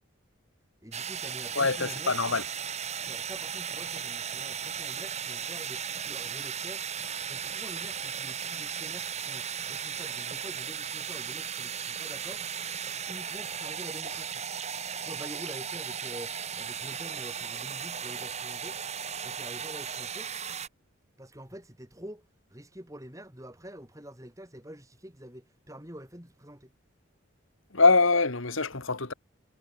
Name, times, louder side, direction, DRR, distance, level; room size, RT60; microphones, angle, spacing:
voice 1, 0.8-2.2 3.0-6.9 7.3-12.5 13.0-14.4 15.0-18.8 19.2-20.3 21.2-26.7, equal, 15° right, 4.9 m, -46 dB
sound 1, 0.9-20.7, right 7 dB, 30° right, 3.0 m, -36 dB
voice 2, 1.6-2.4 27.7-29.1, left 3 dB, 75° left, 2.2 m, -23 dB
head